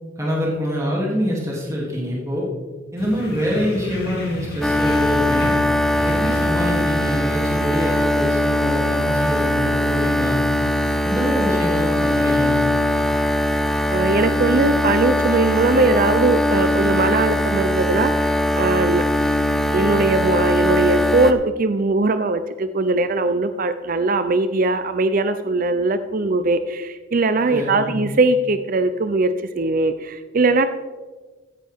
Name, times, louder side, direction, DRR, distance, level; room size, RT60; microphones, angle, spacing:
voice 1, 0.2-2.5 2.9-5.5 6.0-10.4 11.0-12.6 27.5-28.0, equal, 15° right, -5 dB, 2.8 m, -25 dB
sound 1, 3.0-8.0, left 1 dB, 55° left, 2.8 m, -34 dB
sound 2, 4.6-21.3, left 1 dB, ahead, 0.6 m, -20 dB
voice 2, 13.9-19.0 19.7-30.7, right 3 dB, 45° right, 10 dB, 0.5 m, -20 dB
16.0 x 9.8 x 3.6 m, 1.4 s
head